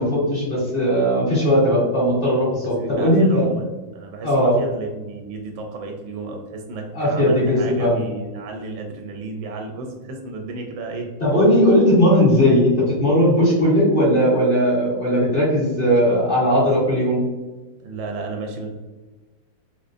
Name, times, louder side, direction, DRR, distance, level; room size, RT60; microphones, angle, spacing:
voice 1, 0.0-3.5 4.2-4.6 6.9-8.0 11.2-17.2, equal, 35° left, -7 dB, 1.1 m, -18 dB
voice 2, 2.8-3.7 3.9-11.1 15.8-16.2 17.8-18.7, right 3 dB, 90° right, 2 dB, 1.4 m, -33 dB
3.8 x 2.9 x 2.5 m, 1.2 s
omnidirectional pair, 2.1 m